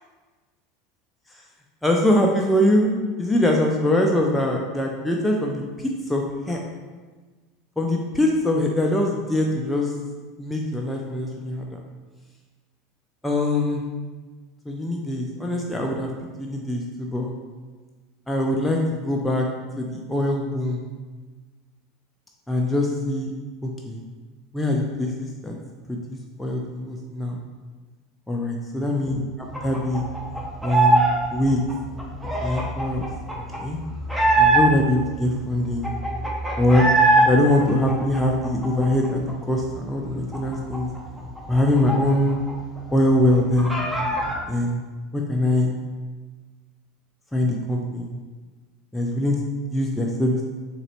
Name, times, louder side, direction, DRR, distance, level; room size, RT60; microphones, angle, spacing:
voice 1, 1.8-6.6 7.8-9.9 10.4-11.7 13.2-13.8 14.7-16.1 16.4-17.3 18.3-19.5 19.8-20.8 22.5-23.3 23.9-24.0 24.5-25.6 25.9-27.4 28.3-29.2 29.6-30.0 30.6-31.6 32.4-33.1 33.6-33.8 34.4-35.9 36.6-36.9 37.3-40.9 41.5-42.4 42.9-43.7 44.5-44.8 45.1-45.7 47.3-48.1 48.9-49.4 49.7-50.4, left 1 dB, 5° left, -1 dB, 0.4 m, -23 dB
sound 1, 29.5-31.2 31.4-34.9 35.4-35.5 35.6-37.3 37.6-39.3 39.6-39.7 40.0-42.5 42.8-42.9 43.2-44.4, right 2 dB, 10° right, 0.8 m, -22 dB
3.9 x 2.9 x 3.1 m, 1.3 s
hypercardioid pair, 90°, 0 cm